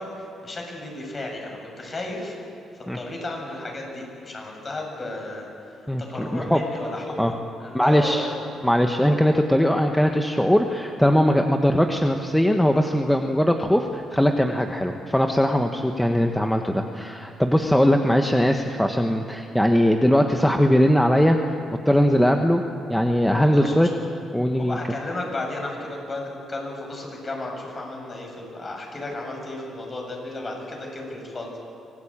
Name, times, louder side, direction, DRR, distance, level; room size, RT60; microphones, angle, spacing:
voice 1, 0.0-2.4 2.9-7.2 7.6-8.5 23.4-23.9 24.6-31.6, left 2 dB, 35° left, 1 dB, 7.5 m, -33 dB
voice 2, 5.9-6.6 7.2-7.3 7.7-8.3 8.6-21.5 21.8-22.6 22.9-23.9 24.3-24.8, equal, 5° left, 4 dB, 1.4 m, -20 dB
25.0 x 18.5 x 8.9 m, 2.5 s
cardioid pair, 90°, 0 cm